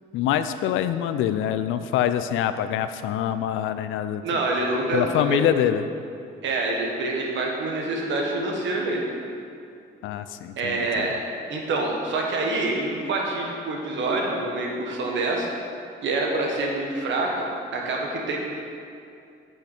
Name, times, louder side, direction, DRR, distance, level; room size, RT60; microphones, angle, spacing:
voice 1, 0.1-4.2 4.9-5.8 10.0-11.1, left 10 dB, 90° left, 11 dB, 0.4 m, -25 dB
voice 2, 4.2-5.4 6.4-9.0 10.6-11.1 11.5-15.5 16.0-17.5 17.7-18.4, right 2 dB, 70° right, -1 dB, 1.4 m, -26 dB
8.2 x 5.8 x 4.4 m, 2.5 s
cardioid pair, 90°, 20 cm